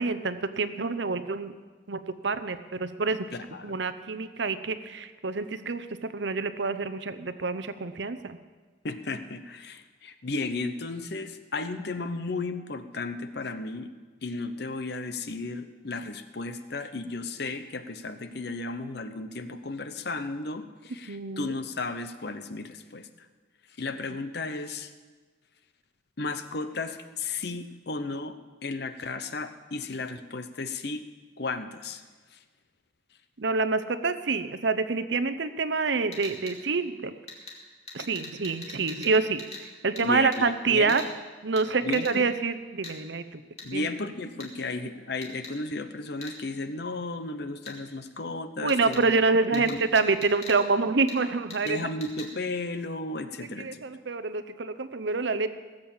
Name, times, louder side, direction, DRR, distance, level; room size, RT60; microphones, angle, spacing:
voice 1, 0.0-1.5 1.9-3.2 3.6-8.4 21.1-21.5 33.4-37.1 37.9-39.4 39.8-41.0 41.4-43.4 43.7-43.9 48.6-51.9 53.6-55.5, right 4 dB, 65° right, 12 dB, 0.8 m, -27 dB
voice 2, 3.3-3.8 8.8-13.9 14.2-23.1 23.8-24.9 26.2-28.4 28.6-31.0 31.4-32.0 32.3-32.4 40.0-40.3 40.7-41.0 41.8-42.3 43.6-49.0 49.5-49.8 51.6-53.9, left 3 dB, 55° left, 10 dB, 0.8 m, -34 dB
sound 1, 36.1-36.6 37.3-37.6 37.9-39.1 39.4-39.6 40.0-40.1 40.3-40.4 40.9-41.1 41.6-41.7 41.9-42.1 42.8-43.0 43.6-43.7 44.4-44.5 45.2-45.5 46.2-46.4 47.7-47.8 48.7-49.0 49.5-50.6 51.1-51.2 51.5-51.7 52.0-52.3, left 3 dB, 35° left, 2.4 m, -42 dB
18.0 x 7.8 x 7.2 m, 1.4 s
head